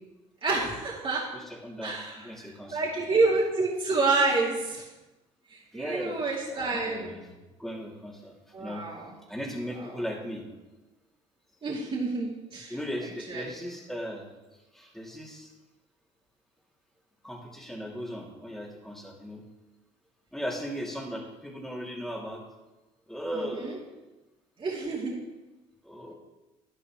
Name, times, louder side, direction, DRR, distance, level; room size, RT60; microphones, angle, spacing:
voice 1, 0.4-1.2 1.8-2.3 2.7-4.8 5.5-7.1 8.5-9.1 11.6-12.7 13.3-13.5 23.3-23.8 24.6-25.2, right 3 dB, 35° right, -7 dB, 2.9 m, -28 dB
voice 2, 1.3-3.2 5.7-6.2 6.5-7.3 7.6-8.3 8.6-8.9 9.3-10.4 12.7-14.3 14.7-15.5 17.2-19.4 20.3-22.4 23.1-23.8 25.8-26.1, equal, ahead, -2 dB, 2.8 m, -37 dB
11.0 x 11.0 x 3.2 m, 1.1 s
supercardioid pair, 80°, 16 cm